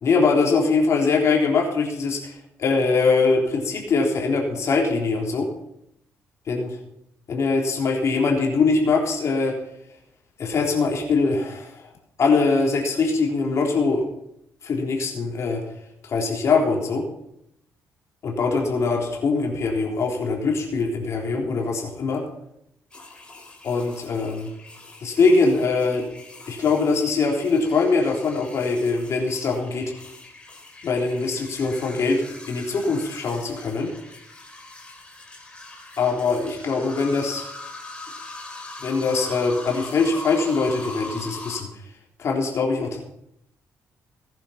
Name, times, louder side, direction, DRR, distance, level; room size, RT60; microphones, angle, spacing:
voice 1, 0.0-5.5 6.5-6.7 7.3-9.5 10.4-11.8 12.2-14.0 14.6-15.6 16.0-17.0 18.2-22.2 23.6-24.5 25.0-26.0 26.5-29.9 30.8-33.9 36.0-37.4 38.8-41.7 42.2-43.0, left 4 dB, 55° left, 0 dB, 3.7 m, -22 dB
sound 1, 22.9-41.6, left 2 dB, 15° left, 3.9 m, -41 dB
18.5 x 10.5 x 5.9 m, 0.79 s
cardioid pair, 115°, 6 cm